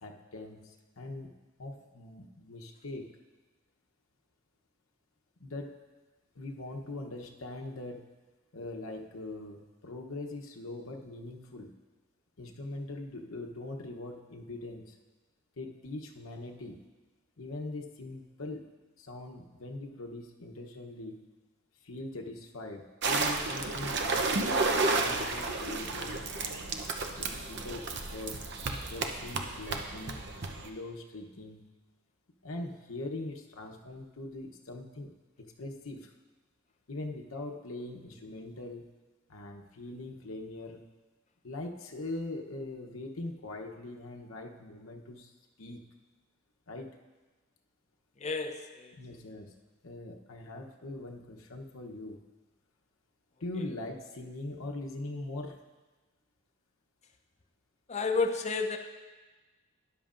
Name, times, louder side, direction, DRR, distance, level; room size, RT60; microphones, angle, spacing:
voice 1, 0.0-3.1 5.4-5.8 6.3-8.0 8.5-11.7 12.4-15.0 15.6-16.8 17.4-18.6 19.0-21.2 21.8-24.6 24.9-26.7 27.1-28.4 28.9-30.3 30.6-31.6 32.4-35.1 35.4-36.1 36.9-38.9 39.3-40.8 41.4-45.3 45.6-45.8 46.7-47.0 48.9-49.5 49.8-52.2 53.4-55.6, left 2 dB, 85° left, 1 dB, 0.9 m, -42 dB
sound 1, 23.0-30.7, right 3 dB, 55° right, 0.8 m, -32 dB
voice 2, 48.2-49.0 57.9-58.8, left 4 dB, 35° left, 5 dB, 0.6 m, -31 dB
13.0 x 10.5 x 2.6 m, 1.3 s
head